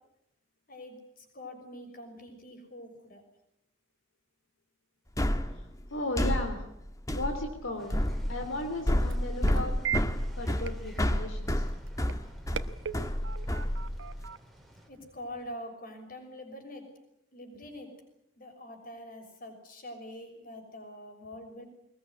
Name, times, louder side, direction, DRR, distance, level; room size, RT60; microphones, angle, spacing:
voice 1, 1.3-3.2 14.9-16.9 17.3-17.9 18.4-21.6, left 1 dB, 45° left, 5 dB, 6.2 m, -44 dB
sound 1, 5.2-14.3, equal, 15° left, 1.4 m, -30 dB
voice 2, 5.5-6.6 7.1-8.0 8.3-9.7 10.4-11.7, left 1 dB, 80° left, 4 dB, 3.3 m, -36 dB
sound 2, 7.7-15.5, right 8 dB, 70° right, 1.1 m, -42 dB
sound 3, 7.8-14.9, equal, ahead, 3.2 m, -55 dB
22.5 x 20.5 x 9.8 m, 0.81 s
head